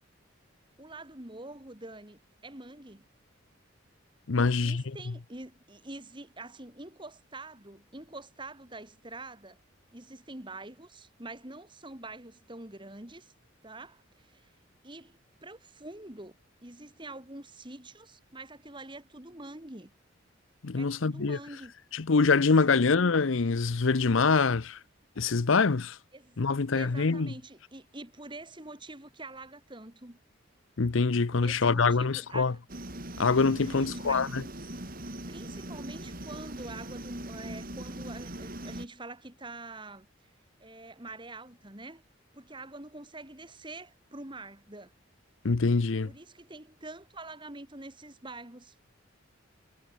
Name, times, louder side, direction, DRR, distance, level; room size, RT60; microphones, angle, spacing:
voice 1, 0.8-3.1 4.4-9.6 9.9-13.3 13.6-14.5 14.8-19.9 20.8-21.7 22.6-22.9 26.1-26.5 26.7-30.2 31.3-32.6 33.7-34.3 35.3-40.1 40.6-42.0 42.3-44.9 46.0-48.8, right 2 dB, 25° right, 2.7 m, -46 dB
voice 2, 4.3-5.0 20.6-21.4 21.9-24.8 25.2-26.0 26.4-27.3 30.8-32.5 33.2-34.4 45.4-46.1, left 4 dB, 70° left, 0.7 m, -25 dB
sound 1, 32.7-38.9, right 1 dB, 45° right, 5.9 m, -40 dB
head